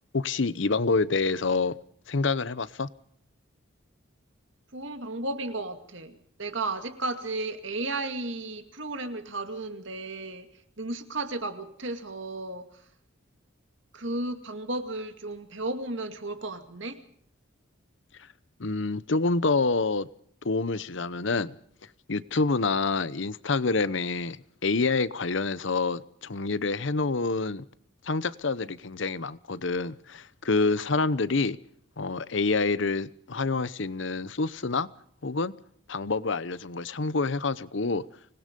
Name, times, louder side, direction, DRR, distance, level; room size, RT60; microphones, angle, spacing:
voice 1, 0.1-1.7 2.1-2.9 18.6-20.1 20.4-21.5 22.1-27.6 28.0-31.6 32.0-34.9 35.2-35.5 35.9-38.0, left 3 dB, 65° left, 0.8 m, -27 dB
voice 2, 4.7-10.5 10.8-12.8 13.9-17.0, right 2 dB, 65° right, 2.3 m, -34 dB
25.5 x 20.0 x 5.3 m
head